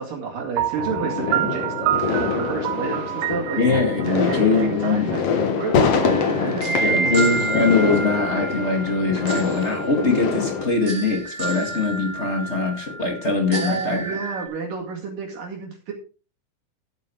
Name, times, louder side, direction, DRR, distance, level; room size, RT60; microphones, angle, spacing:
voice 1, 0.0-3.6 4.1-5.2 5.5-7.3 13.5-15.9, right 5 dB, 65° right, 0 dB, 3.8 m, -30 dB
Piano, 0.6-5.4, right 14 dB, 85° right, 2.6 m, -27 dB
sound 1, 0.8-10.7, left 5 dB, 55° left, 2.0 m, -25 dB
voice 2, 3.6-5.0 6.8-14.2, left 3 dB, 35° left, 4 dB, 1.1 m, -22 dB
sound 2, 6.0-14.5, right 3 dB, 30° right, 2.6 m, -30 dB
12.0 x 8.3 x 4.7 m, 0.36 s
omnidirectional pair, 4.3 m